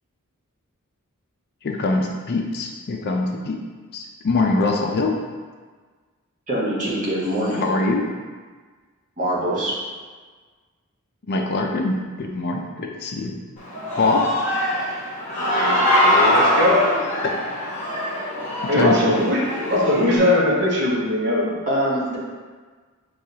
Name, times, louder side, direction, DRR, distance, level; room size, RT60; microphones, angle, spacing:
voice 1, 1.6-3.6 3.9-5.2 7.5-8.0 11.3-13.3 14.0-14.2 17.2-17.3 18.7-18.9, left 3 dB, 50° left, 1 dB, 0.4 m, -23 dB
voice 2, 6.5-7.7 9.2-9.8 21.7-22.2, right 1 dB, 35° right, -7 dB, 1.2 m, -23 dB
Human voice / Cheering, 13.6-20.2, left 1 dB, 35° left, 1.0 m, -22 dB
voice 3, 15.3-16.9 18.7-21.6, left 1 dB, 55° right, -3 dB, 0.7 m, -21 dB
6.3 x 2.3 x 2.8 m, 1.5 s
head